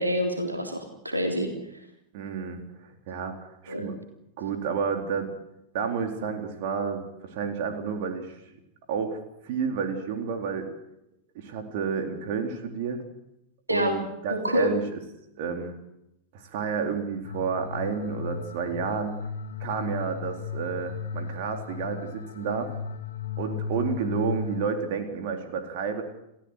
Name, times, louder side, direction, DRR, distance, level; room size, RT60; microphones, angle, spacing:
voice 1, 0.0-1.5 3.7-3.9 13.7-14.0 14.3-14.7, equal, 85° right, 3 dB, 3.6 m, -26 dB
voice 2, 2.1-3.9 4.4-5.3 5.7-8.3 8.9-9.2 9.4-10.7 11.4-13.0 13.7-14.8 15.4-15.7 16.3-19.2 19.6-22.7 23.4-26.0, right 6 dB, 50° right, 5 dB, 3.9 m, -30 dB
sound 1, 17.2-24.7, left 5 dB, 70° left, 1.9 m, -35 dB
29.5 x 16.0 x 8.2 m, 0.85 s
figure-of-eight pair, 90°, 0 cm